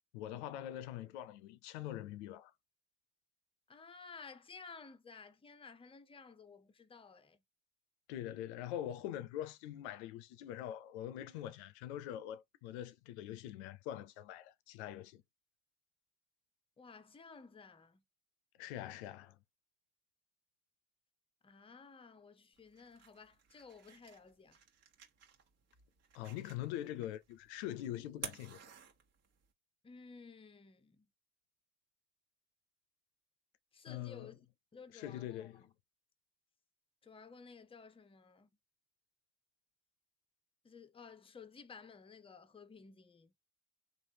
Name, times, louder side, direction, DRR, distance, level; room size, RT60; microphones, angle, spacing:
voice 1, 0.1-2.5 8.1-15.2 18.6-19.4 26.1-28.6 33.9-34.3 34.9-35.6, left 12 dB, 85° left, 0.5 m, -43 dB
voice 2, 3.7-7.4 16.8-18.0 21.4-24.6 29.8-31.1 33.7-34.4 34.7-35.7 37.0-38.5 40.6-43.3, left 5 dB, 15° left, 0.6 m, -55 dB
sound 1, 22.5-29.5, right 8 dB, 50° right, 1.3 m, -53 dB
3.2 x 2.5 x 2.8 m
supercardioid pair, 75°, 33 cm